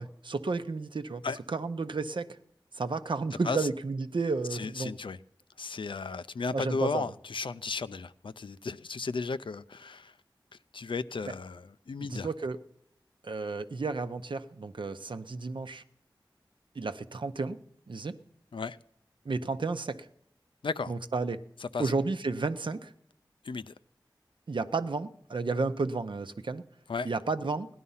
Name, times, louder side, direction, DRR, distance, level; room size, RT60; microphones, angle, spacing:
voice 1, 0.0-1.2 1.5-2.3 2.7-4.9 6.5-7.1 12.0-12.6 13.2-15.8 16.7-17.6 17.9-18.2 19.2-20.0 20.9-21.4 21.8-22.9 24.5-26.6 27.0-27.7, right 3 dB, 75° right, 0.7 m, -32 dB
voice 2, 4.5-5.2 5.6-10.1 10.7-12.3 18.5-18.8 20.6-21.0 21.6-21.9 23.4-23.7 26.9-27.1, left 4 dB, 90° left, 0.5 m, -34 dB
17.0 x 11.0 x 5.6 m
wide cardioid pair, 45°, 8 cm